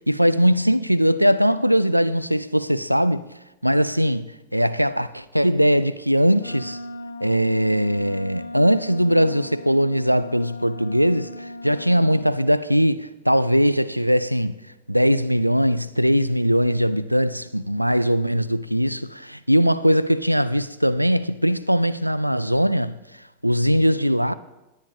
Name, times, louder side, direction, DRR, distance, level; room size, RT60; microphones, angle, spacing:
voice 1, 0.1-3.2 3.6-6.8 7.2-14.6 14.9-23.0 23.4-24.3, equal, 90° right, 0.3 m, -20 dB
Wind instrument woodwind instrument, 6.3-12.4, left 2 dB, 70° left, 0.6 m, -38 dB
17.5 x 10.5 x 2.6 m
figure-of-eight pair, 90°, 0 cm